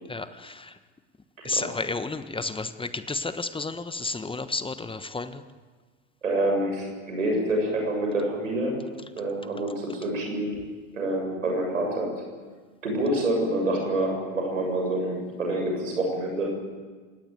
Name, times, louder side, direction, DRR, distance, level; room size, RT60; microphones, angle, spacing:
voice 1, 0.1-0.5 1.4-5.3, left 3 dB, 15° left, 11 dB, 1.3 m, -31 dB
voice 2, 6.2-8.8 9.2-10.6 10.9-12.2 12.8-16.5, right 1 dB, 90° right, 1 dB, 7.3 m, -27 dB
27.0 x 18.0 x 9.4 m, 1.4 s
hypercardioid pair, 80°, 37 cm